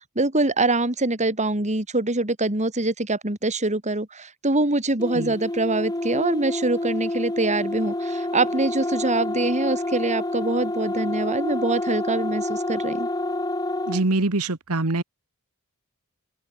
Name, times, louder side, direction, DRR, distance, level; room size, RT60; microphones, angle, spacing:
voice 1, 0.2-13.1, right 2 dB, 30° right, 3.6 m, -24 dB
sound 1, 5.0-14.1, left 1 dB, 20° left, 2.6 m, -28 dB
voice 2, 13.9-15.0, right 2 dB, 75° right, 1.7 m, -24 dB
open air
head